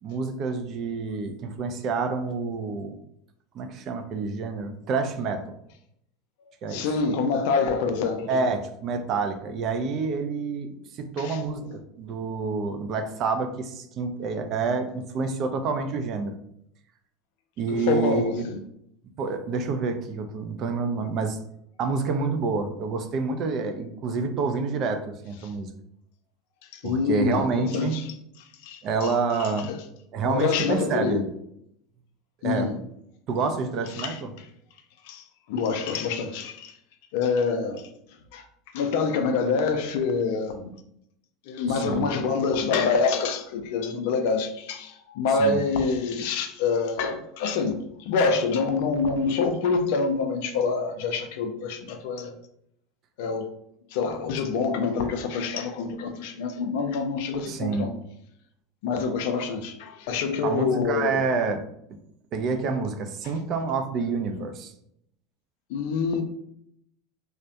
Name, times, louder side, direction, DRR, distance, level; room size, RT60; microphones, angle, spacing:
voice 1, 0.0-3.0 3.5-5.4 6.6-6.8 8.3-16.3 17.6-18.4 19.2-21.4 21.8-25.7 26.8-28.0 28.8-29.7 30.1-31.2 32.4-32.7 33.3-34.3 41.7-42.1 45.4-45.6 57.5-57.9 60.4-61.6 62.3-64.7, right 4 dB, 50° right, 0.4 m, -28 dB
voice 2, 6.7-8.4 11.2-11.8 17.7-18.6 26.7-28.0 28.6-29.1 29.4-29.8 30.2-31.3 32.4-32.8 33.9-34.5 35.0-36.7 37.1-37.9 38.3-38.4 38.7-40.7 41.5-47.7 48.0-52.3 53.2-53.6 53.9-57.9 58.8-61.3 65.7-66.2, left 5 dB, 70° left, 0.3 m, -26 dB
2.3 x 2.0 x 2.7 m
hypercardioid pair, 85°, 0 cm